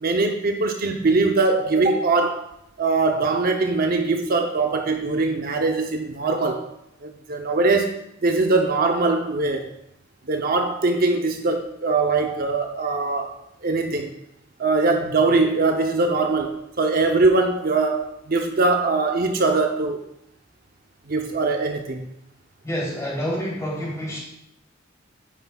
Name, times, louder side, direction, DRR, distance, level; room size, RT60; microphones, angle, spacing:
voice 1, 0.0-2.4 2.8-6.6 7.0-7.9 8.2-9.6 10.3-13.3 13.6-14.1 14.6-20.0 21.1-22.1, right 3 dB, 50° right, 3 dB, 0.7 m, -21 dB
voice 2, 22.6-24.2, equal, 15° left, -5 dB, 3.2 m, -28 dB
10.0 x 9.1 x 2.3 m, 0.80 s
head